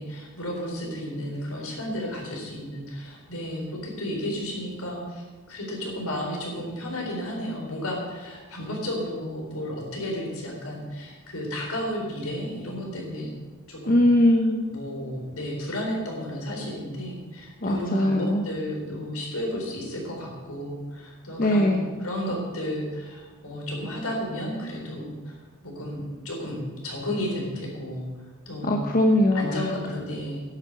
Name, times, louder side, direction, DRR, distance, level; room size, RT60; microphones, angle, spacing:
voice 1, 0.0-13.3 13.7-14.0 14.7-25.4 25.6-28.9 29.3-30.4, equal, 75° left, -1 dB, 4.1 m, -33 dB
voice 2, 13.9-14.6 17.6-18.4 21.4-21.9 28.6-29.4, left 1 dB, 40° left, 2 dB, 1.0 m, -20 dB
10.0 x 8.9 x 7.9 m, 1.3 s
head